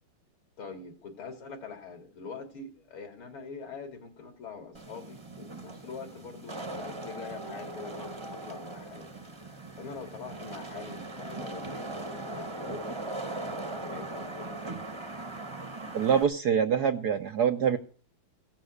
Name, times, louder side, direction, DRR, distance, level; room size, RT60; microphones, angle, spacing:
voice 1, 0.6-9.2 9.7-14.6, left 5 dB, 70° left, 5 dB, 3.9 m, -44 dB
Wind / Rain, 4.7-16.2, right 2 dB, 15° right, 1.0 m, -39 dB
voice 2, 15.9-17.8, right 7 dB, 60° right, 7 dB, 1.1 m, -25 dB
16.5 x 7.5 x 7.9 m, 0.42 s
omnidirectional pair, 2.4 m